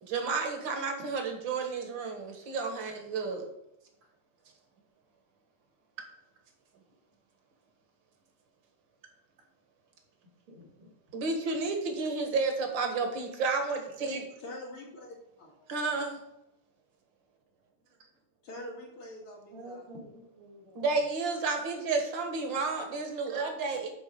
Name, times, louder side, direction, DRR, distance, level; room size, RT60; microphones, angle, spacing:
voice 1, 0.0-3.5 11.1-14.3 15.7-16.2 20.8-23.9, right 4 dB, 60° right, 4 dB, 2.2 m, -31 dB
voice 2, 10.5-10.9 19.5-20.9 23.3-23.5, equal, 80° right, -1 dB, 3.5 m, -49 dB
voice 3, 14.4-15.5 18.4-19.9 22.5-22.6, left 1 dB, 80° left, -2 dB, 3.5 m, -45 dB
10.0 x 4.3 x 6.7 m, 0.85 s
omnidirectional pair, 2.4 m